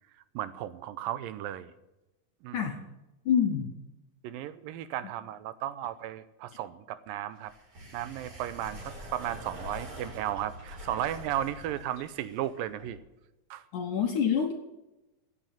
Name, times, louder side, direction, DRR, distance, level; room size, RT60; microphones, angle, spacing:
voice 1, 0.4-1.7 2.4-2.6 4.2-7.5 7.9-13.0 13.5-13.6, right 12 dB, 80° right, 14 dB, 2.3 m, -35 dB
voice 2, 3.3-3.7 13.7-14.5, left 7 dB, 70° left, 3 dB, 2.3 m, -26 dB
sound 1, 7.4-13.0, equal, 45° right, 5.0 m, -45 dB
14.5 x 9.1 x 8.9 m, 0.99 s
omnidirectional pair, 4.1 m